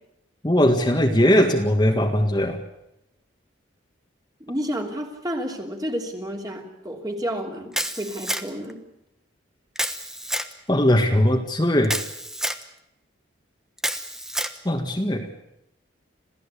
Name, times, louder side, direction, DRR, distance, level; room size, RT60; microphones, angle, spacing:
voice 1, 0.4-2.6 10.7-11.9 14.7-15.3, equal, 20° left, 2 dB, 1.8 m, -19 dB
voice 2, 4.4-8.8, equal, 20° right, 2 dB, 3.1 m, -30 dB
Camera, 7.7-8.7 9.8-10.5 11.8-12.6 13.8-14.6, equal, 5° right, 1.1 m, -28 dB
27.0 x 16.5 x 8.4 m, 0.88 s
head